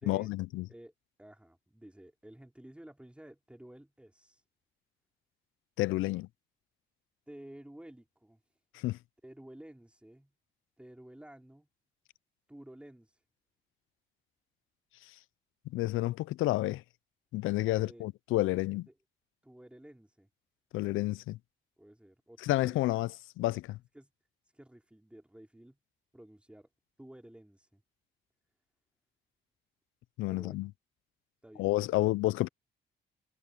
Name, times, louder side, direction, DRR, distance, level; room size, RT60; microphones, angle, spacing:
voice 1, 0.1-0.6 5.8-6.3 8.7-9.0 15.7-16.8 17.3-18.9 20.7-21.4 22.4-23.1 23.4-23.8 30.2-30.7 31.6-32.5, left 18 dB, 85° left, 0.5 m, -30 dB
voice 2, 1.2-4.4 7.3-8.6 9.2-10.3 10.8-11.7 12.5-13.2 17.6-18.1 18.9-19.0 19.4-20.3 21.8-22.9 23.9-24.1 24.4-25.8 26.1-26.7 27.0-27.8 30.3-30.7 31.4-32.1, right 1 dB, 5° right, 4.2 m, -52 dB
cardioid pair, 90°, 20 cm